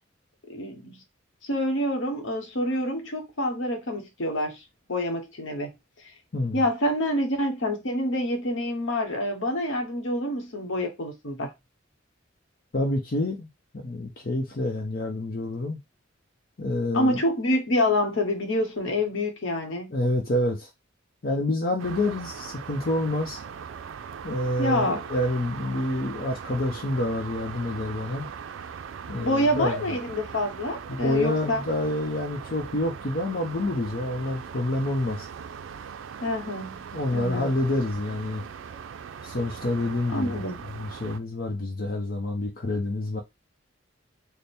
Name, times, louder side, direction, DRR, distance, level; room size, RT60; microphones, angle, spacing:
voice 1, 0.5-1.0 1.4-4.6 4.9-5.7 6.5-11.5 16.9-19.9 24.6-25.0 29.2-31.6 36.2-37.5 40.1-40.8, left 1 dB, 85° left, 1.0 m, -27 dB
voice 2, 12.7-13.5 13.7-15.8 16.6-17.2 19.9-20.7 21.2-23.4 24.2-28.3 29.1-29.8 30.9-35.3 36.9-38.4 39.2-43.2, left 1 dB, 50° left, 0.7 m, -28 dB
sound 1, 21.8-41.2, right 7 dB, 85° right, 0.4 m, -40 dB
3.4 x 2.1 x 4.2 m
head